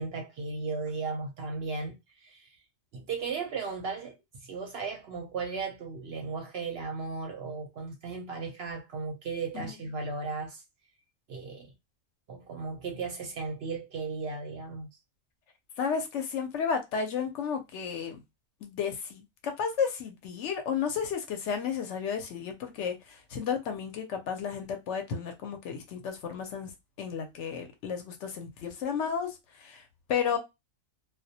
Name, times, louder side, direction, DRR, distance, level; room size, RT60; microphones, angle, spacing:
voice 1, 0.0-2.5 2.9-4.2 4.4-10.6 11.3-11.7 12.3-14.9, right 4 dB, 65° right, 0.7 m, -36 dB
voice 2, 15.8-18.2 18.6-26.7 27.0-29.8 30.1-30.4, left 6 dB, 70° left, 0.8 m, -32 dB
2.2 x 2.1 x 2.7 m
omnidirectional pair, 1.4 m